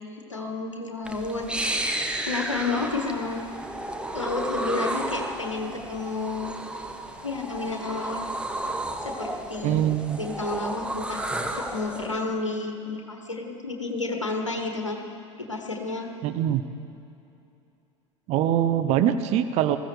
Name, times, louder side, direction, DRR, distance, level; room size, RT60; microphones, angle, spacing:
voice 1, 0.3-1.5 2.3-3.4 4.1-6.5 7.2-8.2 9.0-9.8 10.2-11.2 11.5-15.0 15.4-16.1, left 3 dB, 85° left, 3 dB, 1.2 m, -31 dB
sound 1, 1.0-12.1, right 1 dB, 5° right, 1.2 m, -32 dB
voice 2, 9.6-10.2 16.2-16.6 18.3-19.8, right 11 dB, 45° right, 10 dB, 0.7 m, -23 dB
20.5 x 14.5 x 3.3 m, 2.7 s
figure-of-eight pair, 70°, 15 cm